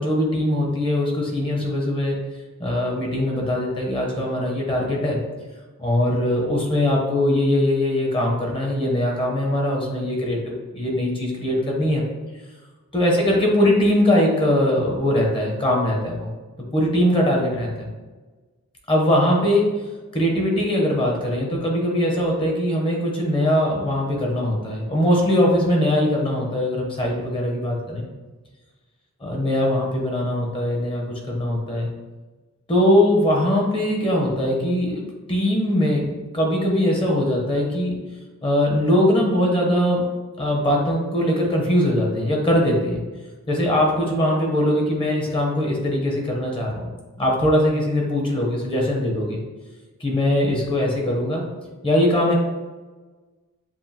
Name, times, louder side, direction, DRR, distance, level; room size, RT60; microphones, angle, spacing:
voice 1, 0.0-2.2 2.6-5.2 5.8-12.0 12.9-16.3 16.7-17.7 18.9-19.7 20.1-28.0 29.2-31.9 32.7-36.0 36.3-38.0 38.4-40.0 40.4-43.0 43.5-46.9 47.2-49.4 50.0-51.4 51.8-52.3, left 1 dB, 25° left, -1 dB, 0.9 m, -21 dB
7.2 x 2.5 x 2.9 m, 1.3 s
head